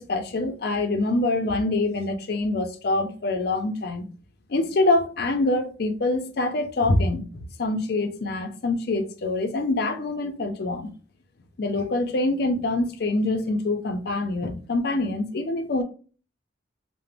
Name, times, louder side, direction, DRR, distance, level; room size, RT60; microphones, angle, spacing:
voice 1, 0.0-4.1 4.5-10.9 11.6-15.8, left 2 dB, 55° left, 0.4 m, -25 dB
2.4 x 2.0 x 3.3 m
head